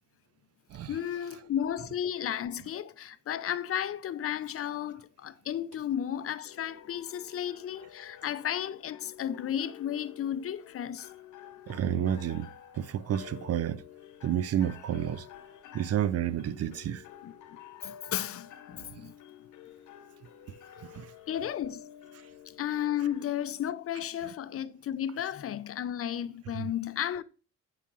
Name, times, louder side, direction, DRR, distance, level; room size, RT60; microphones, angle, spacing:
voice 1, 0.9-11.1 17.2-17.3 17.8-19.1 21.3-21.8 22.6-27.2, left 10 dB, 50° left, 0.5 m, -33 dB
sound 1, 6.4-23.4, left 10 dB, 75° left, 1.0 m, -50 dB
voice 2, 11.7-12.5 12.7-13.8 14.2-15.3 15.7-17.0 18.8-18.9 20.8-21.1 26.6-26.7, right 10 dB, 55° right, 0.5 m, -30 dB
8.3 x 5.7 x 2.4 m
cardioid pair, 90°, 30 cm